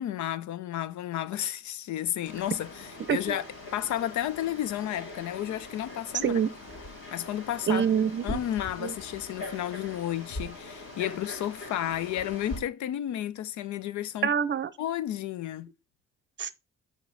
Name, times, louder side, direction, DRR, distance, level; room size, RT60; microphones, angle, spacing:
voice 1, 0.0-3.4 3.7-6.4 7.1-7.9 8.2-14.3 14.8-15.7, left 12 dB, 70° left, 0.6 m, -32 dB
Frog, 2.2-12.6, left 2 dB, 45° left, 2.8 m, -42 dB
voice 2, 7.7-8.4 8.8-9.0 14.2-14.7 16.4-16.5, right 8 dB, 40° right, 0.6 m, -25 dB
5.0 x 4.9 x 3.9 m
cardioid pair, 90°, 30 cm